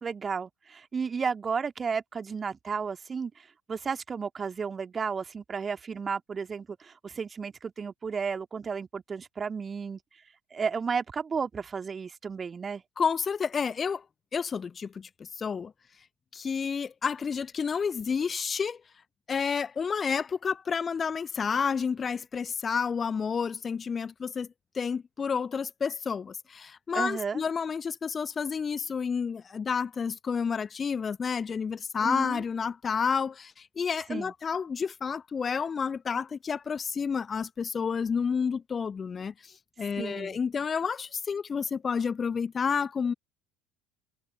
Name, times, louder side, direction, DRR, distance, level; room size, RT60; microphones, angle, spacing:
voice 1, 0.0-10.0 10.5-12.8 26.9-27.4 32.0-32.4 34.1-34.3 40.0-40.4, right 5 dB, 25° right, 2.1 m, -33 dB
voice 2, 13.0-14.0 14.3-15.7 16.3-18.8 19.3-24.5 24.7-43.1, left 6 dB, 30° left, 0.7 m, -30 dB
figure-of-eight pair, 65°, 0 cm